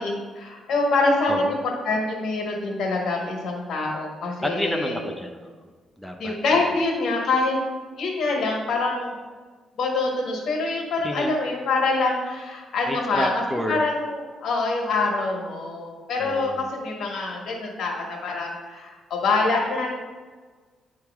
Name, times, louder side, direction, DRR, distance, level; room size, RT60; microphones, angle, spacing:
voice 1, 0.0-1.6 1.8-5.0 6.2-7.6 8.0-9.2 9.8-13.4 13.7-19.9, left 3 dB, 65° left, 0 dB, 1.5 m, -25 dB
voice 2, 4.4-5.7 6.0-6.6 11.0-11.3 12.9-13.8 16.2-16.7, equal, ahead, 3 dB, 0.6 m, -30 dB
9.5 x 3.2 x 3.5 m, 1.5 s
cardioid pair, 90°, 0 cm